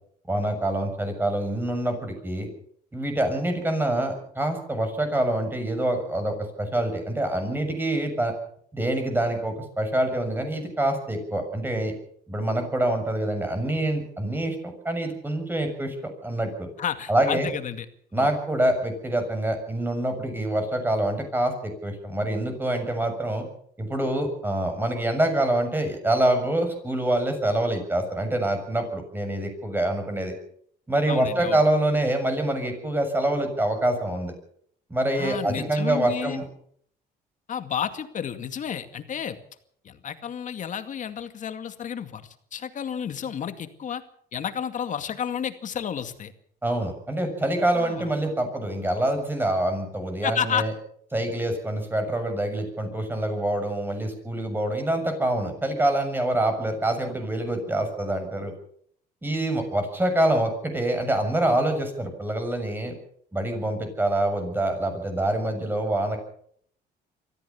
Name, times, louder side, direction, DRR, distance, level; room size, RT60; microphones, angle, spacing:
voice 1, 0.3-2.5 2.9-8.3 8.7-11.9 12.3-16.7 17.1-17.5 18.1-23.5 23.8-30.3 30.9-34.3 34.9-36.4 46.6-50.7 51.1-58.5 59.2-62.9 63.3-66.2, right 1 dB, 10° right, 6 dB, 7.0 m, -26 dB
voice 2, 16.8-17.9 18.1-18.3 31.1-31.6 35.2-36.4 37.5-39.4 39.8-44.0 44.3-46.3 47.7-48.1 50.2-50.7, left 8 dB, 50° left, 9 dB, 2.3 m, -31 dB
24.0 x 15.0 x 7.2 m, 0.64 s
cardioid pair, 110°, 17 cm